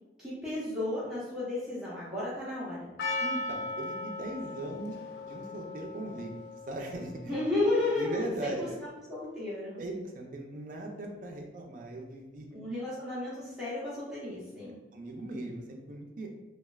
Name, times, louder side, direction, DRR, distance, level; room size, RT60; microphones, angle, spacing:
voice 1, 0.2-2.9 7.3-8.5 9.1-9.8 12.5-14.8, left 2 dB, 5° right, -10 dB, 0.8 m, -33 dB
Percussion, 3.0-8.2, left 2 dB, 65° left, 0.3 m, -38 dB
voice 2, 3.2-6.3 6.7-7.3 8.0-8.8 9.8-12.6 14.9-16.3, right 2 dB, 45° right, 1 dB, 0.4 m, -39 dB
3.1 x 2.3 x 2.3 m, 1.1 s
head